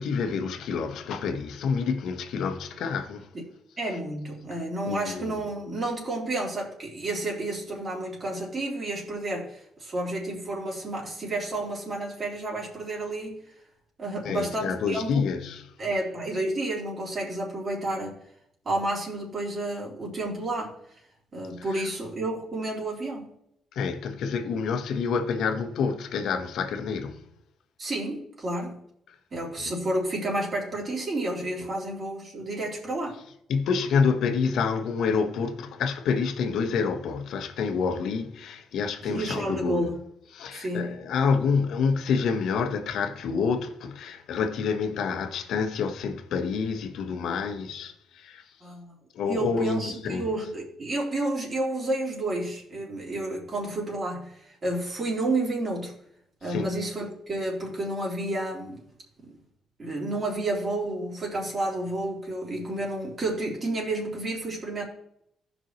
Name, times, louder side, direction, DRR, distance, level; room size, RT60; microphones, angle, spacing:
voice 1, 0.0-3.3 4.5-4.6 4.9-5.4 14.2-15.7 21.7-21.9 23.7-27.2 29.1-29.2 29.6-29.7 31.6-31.7 33.5-39.9 40.3-48.5 49.1-50.3 56.4-56.7, left 5 dB, 75° left, 1.1 m, -28 dB
voice 2, 3.8-13.4 14.0-15.2 15.8-18.2 18.7-20.7 21.3-23.3 27.8-28.8 29.3-33.2 39.0-40.0 40.5-41.0 48.6-49.0 49.3-55.9 56.4-58.8 59.8-64.8, right 2 dB, 40° right, 3.5 m, -30 dB
16.0 x 5.4 x 3.1 m
cardioid pair, 90°, 0 cm